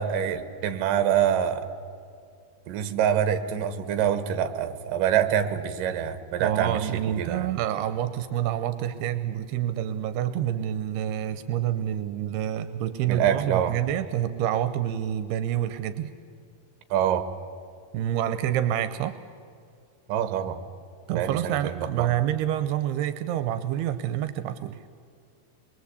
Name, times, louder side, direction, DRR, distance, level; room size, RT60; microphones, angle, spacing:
voice 1, 0.0-1.7 2.7-6.9 7.2-7.5 13.1-13.8 16.9-17.3 20.1-20.6 21.1-22.2, right 9 dB, 65° right, 9 dB, 2.6 m, -25 dB
voice 2, 6.4-16.1 17.9-19.2 21.1-24.8, right 11 dB, 80° right, 11 dB, 2.8 m, -27 dB
26.5 x 22.0 x 8.2 m, 2.4 s
omnidirectional pair, 4.7 m